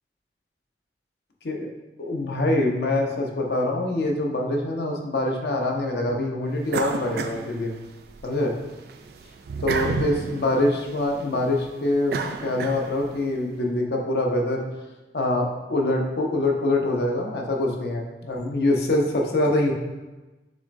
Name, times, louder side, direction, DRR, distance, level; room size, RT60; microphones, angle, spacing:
voice 1, 2.0-7.8 8.2-8.5 9.6-12.1 12.4-14.6 15.1-19.7, left 1 dB, 65° left, 1 dB, 0.7 m, -24 dB
sound 1, 6.7-8.2 8.6-13.2, right 4 dB, 60° right, 0.3 m, -31 dB
6.3 x 3.2 x 2.5 m, 1.1 s
head